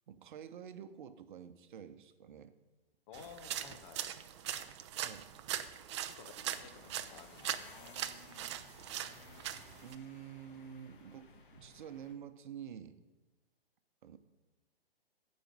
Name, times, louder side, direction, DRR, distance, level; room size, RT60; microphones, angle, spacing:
voice 1, 0.1-2.5 5.0-5.3 9.8-13.0 14.0-14.2, right 8 dB, 55° right, 11 dB, 0.9 m, -49 dB
voice 2, 3.1-4.1 6.1-7.5 7.8-7.9, left 8 dB, 30° left, 10 dB, 0.6 m, -54 dB
sound 1, 3.1-10.0, right 11 dB, 30° right, 0.4 m, -41 dB
sound 2, 6.4-12.1, left 4 dB, 55° left, 1.3 m, -58 dB
15.5 x 5.2 x 5.4 m, 1.2 s
figure-of-eight pair, 125°, 31 cm